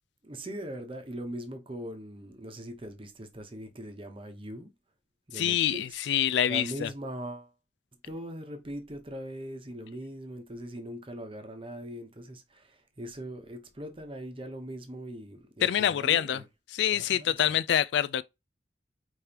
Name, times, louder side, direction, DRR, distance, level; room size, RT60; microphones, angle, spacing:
voice 1, 0.2-4.7 5.3-7.5 8.0-16.5 16.9-17.6, right 1 dB, 30° right, 0.9 m, -41 dB
voice 2, 5.3-6.9 15.6-16.4 16.7-18.2, left 10 dB, 75° left, 0.3 m, -26 dB
5.1 x 3.2 x 2.9 m
head